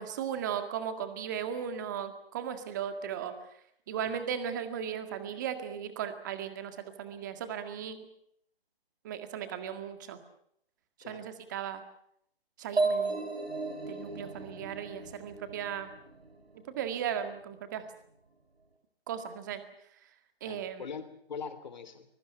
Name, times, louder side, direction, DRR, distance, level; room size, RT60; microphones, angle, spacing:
voice 1, 0.0-3.3 3.9-8.1 9.0-10.2 11.1-11.8 12.6-13.3 13.9-15.9 16.5-17.9 19.1-19.6 20.4-20.9, right 8 dB, 20° right, 9 dB, 1.8 m, -36 dB
sound 1, 12.8-16.4, right 3 dB, 90° right, 7.9 m, -34 dB
voice 2, 20.4-22.1, left 6 dB, 45° left, 11 dB, 3.4 m, -42 dB
25.0 x 22.0 x 6.9 m, 0.70 s
hypercardioid pair, 165°, 31 cm